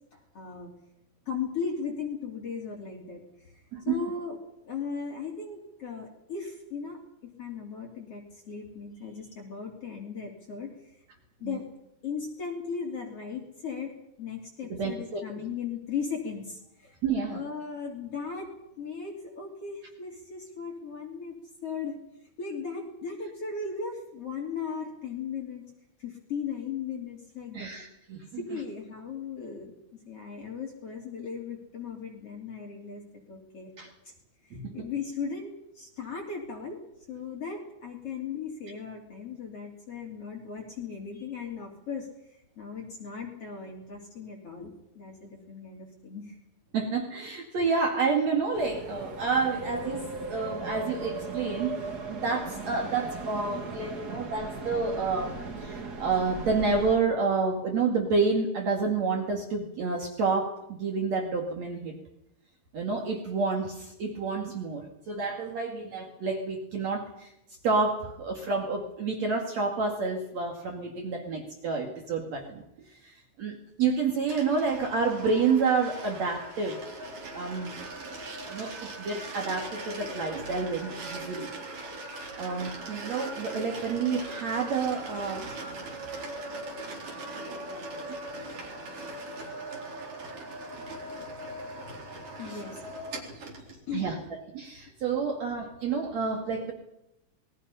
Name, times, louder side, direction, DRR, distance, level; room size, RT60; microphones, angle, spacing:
voice 1, 0.3-0.7 1.3-4.4 4.7-11.0 11.4-11.6 12.0-13.9 14.2-17.0 17.3-18.5 18.8-22.0 22.4-25.7 26.0-27.7 28.3-33.7 34.0-34.1 34.4-36.8 37.1-46.4 90.7-94.1 94.8-94.9 96.1-96.2, left 5 dB, 45° left, -1 dB, 3.8 m, -37 dB
voice 2, 14.7-15.2 17.0-17.4 27.5-28.6 33.8-33.9 34.5-34.9 46.7-51.8 52.1-62.0 62.7-67.3 67.6-76.8 77.3-77.7 78.4-81.5 81.9-85.5 87.5-88.2 92.5-92.6 93.9-94.2 94.5-96.7, right 4 dB, 60° right, 2 dB, 3.3 m, -29 dB
sound 1, 48.5-57.0, right 3 dB, 40° right, 1.8 m, -38 dB
sound 2, 74.3-93.8, right 2 dB, 85° right, 5.6 m, -40 dB
27.0 x 21.5 x 5.6 m, 0.84 s
omnidirectional pair, 3.7 m